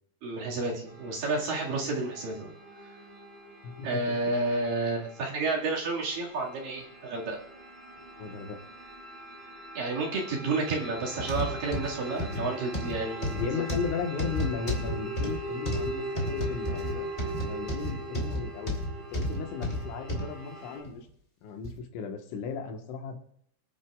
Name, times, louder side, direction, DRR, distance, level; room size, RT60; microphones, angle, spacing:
voice 1, 0.2-2.5 3.8-7.4 9.7-13.6, right 3 dB, 55° right, -3 dB, 3.3 m, -31 dB
sound 1, 0.9-20.8, right 1 dB, 30° right, 3.0 m, -41 dB
voice 2, 3.6-4.2 8.2-8.6 13.4-17.1 17.5-18.7 19.1-21.1 21.4-23.2, left 5 dB, 90° left, 3 dB, 3.8 m, -36 dB
sound 2, 11.2-20.3 20.8-21.0 21.6-21.7, left 1 dB, 15° left, 1.9 m, -32 dB
25.0 x 10.5 x 2.4 m, 0.68 s
omnidirectional pair, 5.2 m